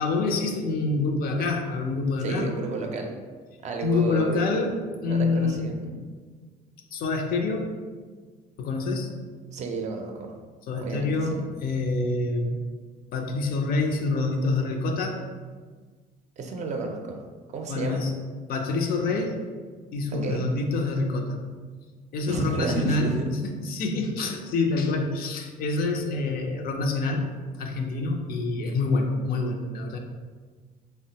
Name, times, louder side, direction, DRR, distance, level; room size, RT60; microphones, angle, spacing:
voice 1, 0.0-2.5 3.8-5.7 6.9-7.8 8.6-9.1 10.7-12.6 13.1-15.2 17.7-18.1 18.5-19.4 19.9-21.4 22.1-27.3 27.5-30.0, left 3 dB, 60° left, 2 dB, 0.5 m, -26 dB
voice 2, 2.2-3.1 3.6-4.4 5.0-6.1 9.5-10.3 10.8-11.4 16.4-17.2 17.5-18.0 20.1-20.4 22.3-23.3 26.0-26.1, right 3 dB, 45° right, 2 dB, 0.4 m, -31 dB
3.5 x 2.1 x 2.7 m, 1.5 s
cardioid pair, 110°, 17 cm